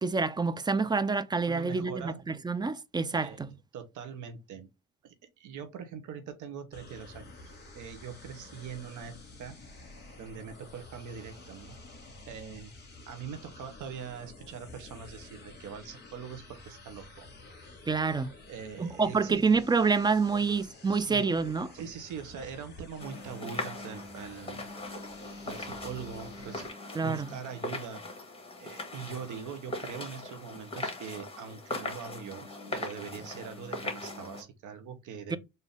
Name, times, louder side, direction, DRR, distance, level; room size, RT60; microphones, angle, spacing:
voice 1, 0.0-3.5 17.9-18.3 18.8-21.7 26.9-27.3 35.3-35.4, right 4 dB, 15° right, 0.3 m, -27 dB
voice 2, 1.5-2.2 3.1-4.7 5.0-9.6 10.2-11.8 12.2-12.7 13.1-17.3 18.5-19.5 20.3-20.6 20.8-21.3 21.7-24.6 25.4-26.7 27.0-28.0 28.6-35.4, right 7 dB, 80° right, 0.9 m, -42 dB
sound 1, 6.7-26.7, left 2 dB, 35° left, 1.8 m, -51 dB
sound 2, 23.0-34.4, left 2 dB, 20° left, 1.6 m, -40 dB
4.0 x 2.7 x 3.4 m
cardioid pair, 90°, 30 cm